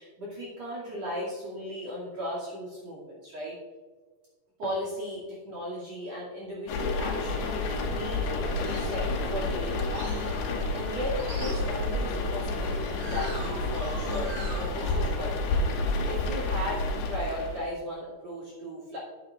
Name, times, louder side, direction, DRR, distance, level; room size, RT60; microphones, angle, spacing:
voice 1, 0.0-3.6 4.6-10.1 10.4-19.0, equal, 45° right, -6 dB, 3.3 m, -36 dB
sound 1, 6.7-17.7, left 2 dB, 85° left, 3.3 m, -30 dB
sound 2, 7.8-16.9, right 3 dB, 60° right, 3.4 m, -43 dB
14.0 x 8.5 x 2.5 m, 1.4 s
omnidirectional pair, 4.5 m